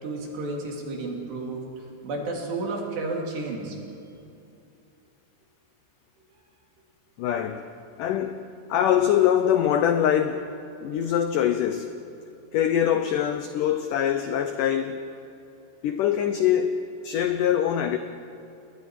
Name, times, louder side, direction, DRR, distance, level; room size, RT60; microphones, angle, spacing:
voice 1, 0.0-1.7 2.0-3.7, right 2 dB, 75° right, 5.2 m, -31 dB
voice 2, 7.2-7.6 8.0-8.4 8.7-10.5 10.8-11.9 12.5-15.0 15.8-18.0, left 10 dB, 90° left, 1.8 m, -23 dB
29.5 x 21.0 x 4.8 m
omnidirectional pair, 4.8 m